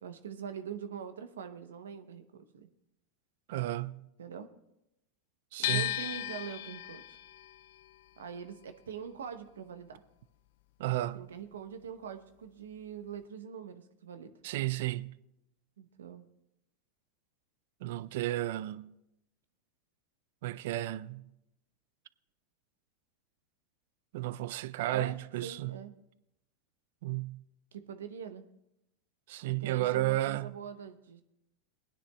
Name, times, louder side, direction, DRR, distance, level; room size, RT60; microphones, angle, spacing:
voice 1, 0.0-2.7 4.2-4.5 5.6-7.2 8.2-10.0 11.1-14.3 15.8-16.3 24.9-25.9 27.7-28.4 29.5-31.2, right 7 dB, 85° right, 0.8 m, -43 dB
voice 2, 3.5-4.0 5.5-5.9 10.8-11.3 14.4-15.1 17.8-18.9 20.4-21.3 24.1-25.8 27.0-27.4 29.3-30.5, right 16 dB, 65° right, 0.4 m, -33 dB
sound 1, 5.6-11.7 11.9-13.2, left 14 dB, 65° left, 0.3 m, -38 dB
22.0 x 9.8 x 2.3 m
hypercardioid pair, 100°, 0 cm